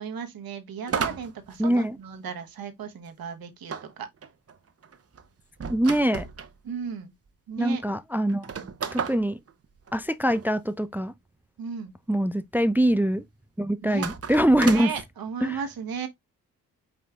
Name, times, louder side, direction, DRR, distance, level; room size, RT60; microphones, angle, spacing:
voice 1, 0.0-4.1 6.6-7.1 7.5-7.8 11.6-11.9 13.8-14.1 14.6-16.1, right 7 dB, 65° right, 1.1 m, -35 dB
sound 1, 0.9-2.4 3.7-6.5 7.3-7.4 7.6-7.7 8.3-10.5 13.9-15.0, right 6 dB, 35° right, 0.8 m, -34 dB
voice 2, 1.6-2.0 5.7-6.3 7.6-8.5 8.9-9.4 9.9-11.1 12.1-13.2 13.6-14.9 15.4-15.6, right 1 dB, 5° right, 0.3 m, -23 dB
5.3 x 4.2 x 2.3 m
supercardioid pair, 45°, 39 cm